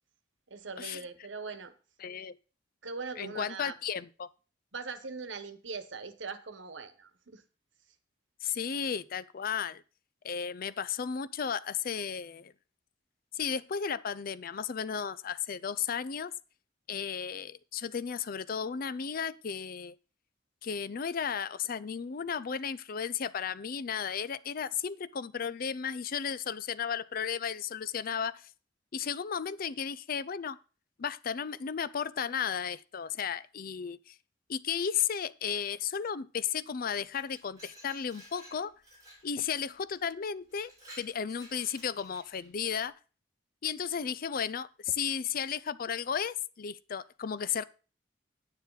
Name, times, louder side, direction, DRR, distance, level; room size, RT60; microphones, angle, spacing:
voice 1, 0.5-1.7 2.8-3.7 4.7-7.4, right 4 dB, 80° right, 1.2 m, -41 dB
voice 2, 2.0-2.4 3.2-4.3 8.4-9.8 10.2-12.5 13.3-16.3 16.9-19.9 20.6-28.5 28.9-30.6 31.0-34.2 34.5-38.7 39.2-40.7 41.0-42.9 43.6-47.6, left 7 dB, 50° left, 0.5 m, -34 dB
Glass, 37.0-39.3 39.9-40.1 40.5-42.5, right 1 dB, 20° right, 7.0 m, -54 dB
9.7 x 9.5 x 4.0 m
head